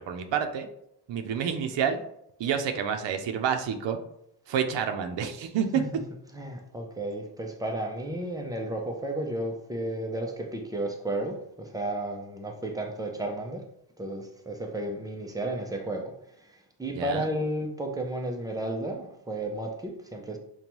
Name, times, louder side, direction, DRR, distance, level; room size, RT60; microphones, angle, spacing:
voice 1, 0.1-0.7 1.1-2.0 2.4-4.0 4.5-5.8 16.9-17.3, right 7 dB, 85° right, 6 dB, 0.6 m, -28 dB
voice 2, 6.3-13.6 14.0-20.4, right 1 dB, 10° right, 2 dB, 0.4 m, -33 dB
5.2 x 2.2 x 3.0 m, 0.75 s
wide cardioid pair, 165°, 42 cm